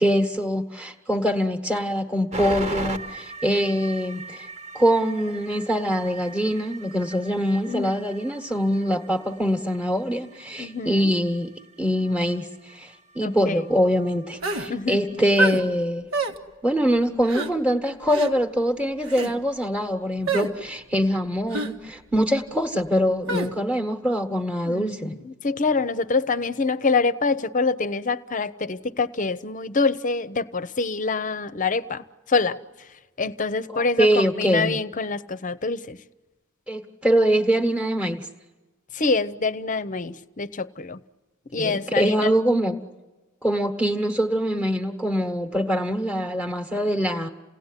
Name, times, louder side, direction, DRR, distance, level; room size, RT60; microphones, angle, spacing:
voice 1, 0.0-4.5 4.7-11.5 11.8-16.1 16.6-25.1 33.7-34.8 36.7-38.3 41.6-42.7 43.4-47.3, equal, 5° right, 1.3 m, -23 dB
sound 1, 2.3-15.8, right 2 dB, 35° right, 1.4 m, -40 dB
voice 2, 7.7-8.2 10.6-11.2 13.2-13.7 14.7-15.2 24.6-32.9 33.2-36.0 38.9-41.0 41.5-42.3, left 4 dB, 40° left, 0.8 m, -26 dB
sound 2, 14.4-14.7 15.4-15.6 16.1-16.4 17.3-17.5 18.1-18.3 19.0-19.3 20.3-20.5 21.5-21.7 23.3-23.5, right 2 dB, 80° right, 2.0 m, -26 dB
29.0 x 18.0 x 9.9 m
head